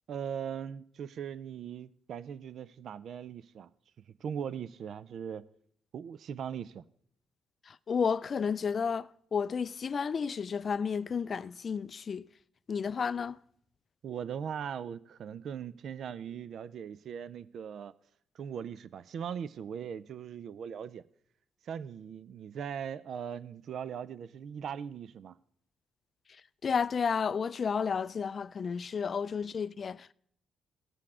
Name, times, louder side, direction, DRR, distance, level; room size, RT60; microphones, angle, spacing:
voice 1, 0.1-3.7 4.2-5.4 5.9-6.8 14.0-17.9 18.3-21.0 21.6-25.4, right 8 dB, 65° right, 0.4 m, -39 dB
voice 2, 7.7-12.3 12.7-13.4 26.6-30.1, left 6 dB, 45° left, 0.3 m, -32 dB
17.5 x 6.8 x 3.6 m
cardioid pair, 90°, 0 cm